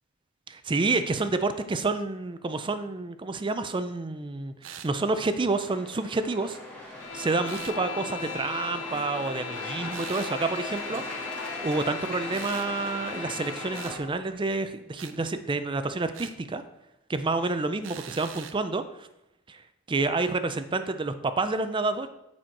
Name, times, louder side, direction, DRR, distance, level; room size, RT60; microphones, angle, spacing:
voice 1, 0.5-6.6 7.1-11.3 11.6-16.6 17.1-18.8 19.5-19.6 19.9-22.1, right 3 dB, 25° right, 10 dB, 0.5 m, -29 dB
sound 1, 4.6-4.9 7.4-7.8 9.9-10.4 12.3-12.7 13.7-14.0 15.0-15.2 16.1-16.4 17.8-18.6, right 9 dB, 75° right, 0.5 m, -43 dB
sound 2, 5.1-14.0, left 1 dB, 5° left, 2.0 m, -39 dB
sound 3, 7.0-14.0, left 6 dB, 75° left, 0.5 m, -38 dB
8.9 x 4.3 x 4.6 m, 0.87 s
head